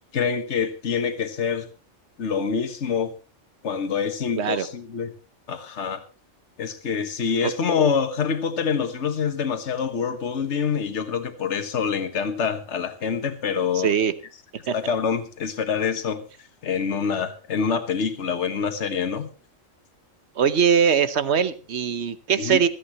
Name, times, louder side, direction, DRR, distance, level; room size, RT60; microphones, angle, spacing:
voice 1, 0.1-1.7 2.2-3.1 3.6-5.1 5.5-6.0 6.6-13.9 14.7-16.2 16.6-19.3 22.4-22.6, left 6 dB, 65° left, 8 dB, 1.6 m, -26 dB
voice 2, 13.8-14.1 14.7-14.8 20.4-22.7, right 7 dB, 60° right, 13 dB, 1.2 m, -21 dB
25.0 x 8.8 x 3.0 m, 0.35 s
omnidirectional pair, 1.3 m